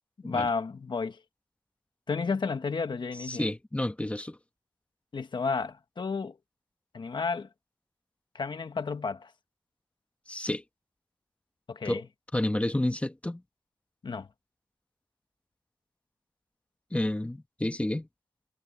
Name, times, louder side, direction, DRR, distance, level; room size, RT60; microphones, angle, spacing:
voice 1, 0.2-1.2 2.1-3.5 5.1-6.4 6.9-7.5 8.3-9.3 11.7-12.0 14.0-14.3, left 4 dB, 70° left, 1.2 m, -32 dB
voice 2, 3.1-4.4 10.3-10.6 11.8-12.0 12.3-13.4 16.9-18.1, left 1 dB, 15° left, 1.3 m, -30 dB
wide cardioid pair, 105°, 8 cm